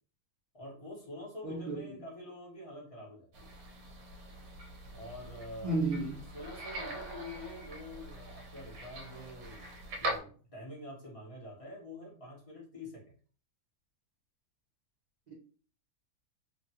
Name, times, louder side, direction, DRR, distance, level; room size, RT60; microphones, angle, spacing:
voice 1, 0.5-3.5 4.9-5.8 6.3-9.6 10.0-13.0, left 1 dB, 25° left, 0.9 m, -46 dB
voice 2, 1.4-1.8 5.6-6.2 15.3-15.4, right 2 dB, 45° right, 0.5 m, -32 dB
sound 1, 3.3-10.2, right 1 dB, 70° right, 1.1 m, -42 dB
2.9 x 2.5 x 2.8 m
omnidirectional pair, 1.8 m